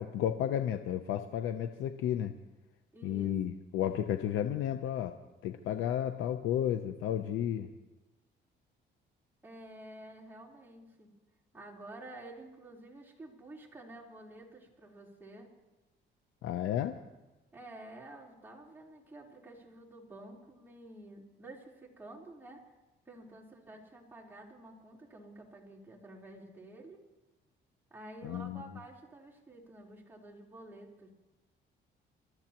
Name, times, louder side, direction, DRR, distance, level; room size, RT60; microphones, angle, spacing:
voice 1, 0.0-2.4 3.0-5.1 5.4-7.7 16.4-17.0 28.2-28.6, left 10 dB, 90° left, 8 dB, 0.7 m, -32 dB
voice 2, 2.9-3.3 9.4-11.1 11.5-15.5 17.5-22.7 23.1-27.0 27.9-31.1, right 1 dB, 10° right, -4 dB, 3.8 m, -50 dB
28.0 x 13.5 x 3.0 m, 1.1 s
cardioid pair, 90°, 20 cm